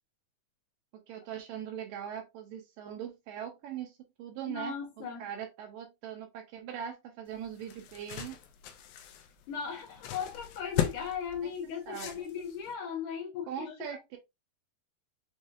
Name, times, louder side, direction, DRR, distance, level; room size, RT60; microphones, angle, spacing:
voice 1, 0.9-8.4 11.9-12.2 13.5-14.2, right 9 dB, 75° right, 2.1 m, -41 dB
voice 2, 4.5-5.3 9.5-13.7, left 7 dB, 65° left, 2.5 m, -37 dB
sound 1, 7.3-12.7, left 10 dB, 80° left, 2.3 m, -38 dB
6.3 x 3.1 x 2.5 m
omnidirectional pair, 4.4 m